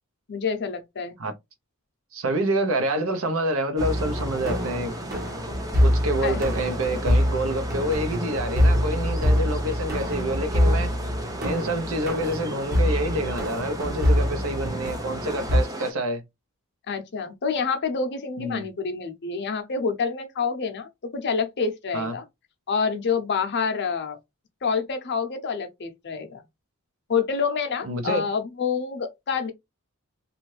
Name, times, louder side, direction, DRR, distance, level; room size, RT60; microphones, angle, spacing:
voice 1, 0.3-1.2 6.2-6.4 16.9-22.2 22.7-24.2 24.6-26.4 27.1-29.5, left 5 dB, 50° left, 0.6 m, -27 dB
voice 2, 2.1-4.9 5.8-10.9 11.4-16.2 18.4-18.7 21.9-22.1 27.8-28.3, right 1 dB, 65° right, 0.7 m, -27 dB
sound 1, 3.8-15.9, right 1 dB, 15° right, 0.6 m, -36 dB
sound 2, 3.8-15.6, equal, 45° right, 1.1 m, -25 dB
2.7 x 2.4 x 3.1 m
head